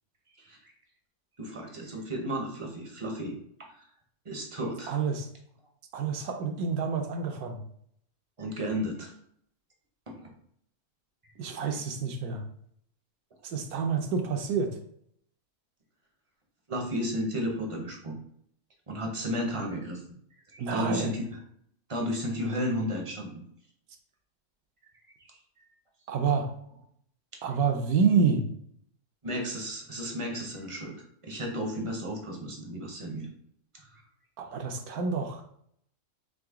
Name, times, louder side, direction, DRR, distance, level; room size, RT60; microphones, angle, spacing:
voice 1, 1.4-3.3 4.2-5.0 8.4-9.1 10.1-10.3 16.7-18.2 18.9-20.0 20.5-21.4 21.9-23.4 25.3-25.7 29.2-33.3 33.9-34.0, equal, 35° right, 1 dB, 0.5 m, -33 dB
voice 2, 4.9-5.3 5.9-7.6 11.4-12.4 13.4-14.7 20.6-21.1 26.1-26.5 27.4-28.4 34.4-35.6, right 5 dB, 75° right, 4 dB, 1.2 m, -28 dB
3.9 x 3.2 x 3.5 m, 0.67 s
omnidirectional pair, 1.6 m